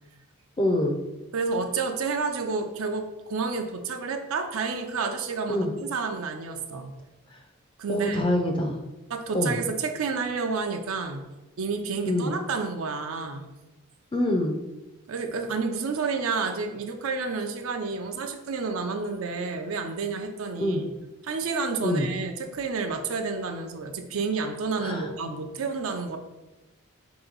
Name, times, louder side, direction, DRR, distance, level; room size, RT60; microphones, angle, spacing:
voice 1, 0.6-1.0 5.5-5.7 7.9-8.8 9.3-9.6 12.1-12.4 14.1-14.6 20.6-20.8 21.8-22.1 24.8-25.1, left 1 dB, 25° left, 4 dB, 0.4 m, -25 dB
voice 2, 1.3-6.9 7.8-8.3 9.1-11.3 11.6-13.5 15.1-20.9 21.2-26.2, right 4 dB, 80° right, 5 dB, 0.5 m, -30 dB
4.4 x 2.9 x 3.9 m, 1.1 s
head